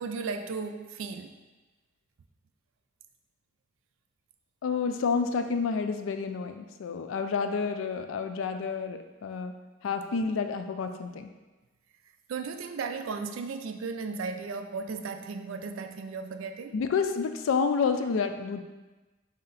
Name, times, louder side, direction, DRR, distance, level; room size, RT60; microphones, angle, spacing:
voice 1, 0.0-1.3 12.3-16.7, right 4 dB, 85° right, 8 dB, 0.4 m, -35 dB
voice 2, 4.6-9.5 9.8-11.3 16.7-18.6, left 5 dB, 85° left, 8 dB, 0.4 m, -29 dB
4.1 x 2.7 x 4.0 m, 1.2 s
head